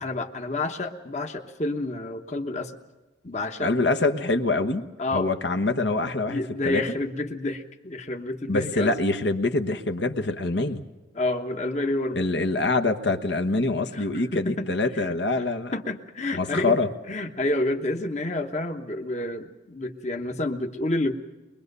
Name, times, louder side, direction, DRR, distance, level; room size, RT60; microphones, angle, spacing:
voice 1, 0.0-2.7 3.2-3.7 5.0-5.3 6.3-8.9 11.1-12.2 13.9-14.7 14.9-15.5 15.7-16.8 17.1-21.1, left 2 dB, 35° left, 5 dB, 1.2 m, -29 dB
voice 2, 3.6-4.9 5.1-6.8 8.5-10.8 12.1-15.7 16.3-16.9, left 2 dB, 65° left, 6 dB, 1.2 m, -25 dB
22.5 x 22.5 x 6.8 m, 1.1 s
head